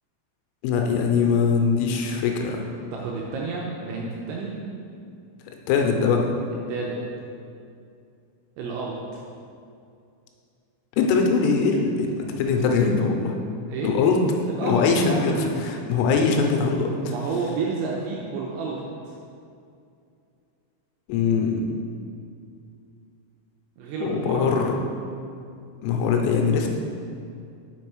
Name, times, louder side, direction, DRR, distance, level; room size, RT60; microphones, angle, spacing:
voice 1, 0.6-2.7 5.7-6.3 11.0-12.1 12.4-13.4 13.8-14.2 14.6-17.1 21.1-21.6 24.0-24.8 25.8-26.7, left 5 dB, 90° left, 2 dB, 3.2 m, -22 dB
voice 2, 2.9-4.5 6.7-7.0 8.6-9.2 13.7-14.0 14.5-15.5 17.0-19.1 23.8-24.4, right 4 dB, 85° right, -3 dB, 2.7 m, -30 dB
6.7 x 5.5 x 4.7 m, 2.4 s
omnidirectional pair, 5.9 m